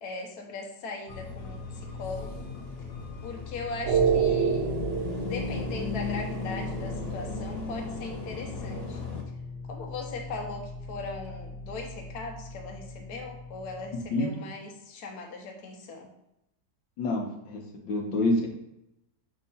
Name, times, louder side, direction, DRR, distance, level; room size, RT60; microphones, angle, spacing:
voice 1, 0.0-1.6 1.9-2.4 3.2-4.7 5.2-9.0 9.7-16.1, left 3 dB, 60° left, 1 dB, 1.4 m, -39 dB
sound 1, 1.1-9.2, left 3 dB, 45° left, 0.9 m, -37 dB
sound 2, 3.8-14.0, right 5 dB, 90° right, 1.6 m, -32 dB
voice 2, 17.0-18.5, left 2 dB, 80° left, 1 dB, 1.6 m, -27 dB
6.4 x 2.8 x 5.4 m, 0.84 s
omnidirectional pair, 2.0 m